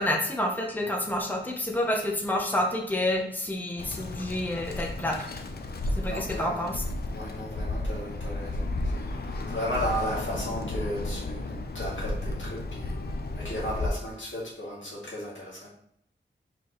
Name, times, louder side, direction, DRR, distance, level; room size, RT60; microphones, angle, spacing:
voice 1, 0.0-5.3 5.9-6.7, left 1 dB, 10° left, 1 dB, 0.7 m, -29 dB
Bird, 3.8-13.9, left 2 dB, 55° left, 0.5 m, -33 dB
voice 2, 6.0-6.7 7.1-13.0 13.3-15.7, equal, 85° left, -5 dB, 1.7 m, -35 dB
4.4 x 3.3 x 3.0 m, 0.70 s
wide cardioid pair, 65°, 19 cm